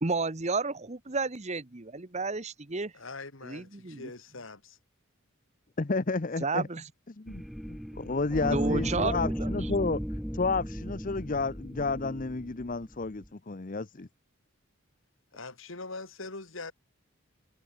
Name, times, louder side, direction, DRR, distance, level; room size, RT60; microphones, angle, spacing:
voice 1, 0.0-2.9 3.4-4.1 6.4-6.8 8.5-9.5, right 3 dB, 30° right, 1.0 m, -31 dB
voice 2, 2.9-4.8 15.3-16.7, left 3 dB, 65° left, 2.5 m, -42 dB
voice 3, 5.8-6.7 7.1-14.1, left 3 dB, 40° left, 0.7 m, -31 dB
sound 1, 7.3-13.3, equal, ahead, 0.7 m, -35 dB
head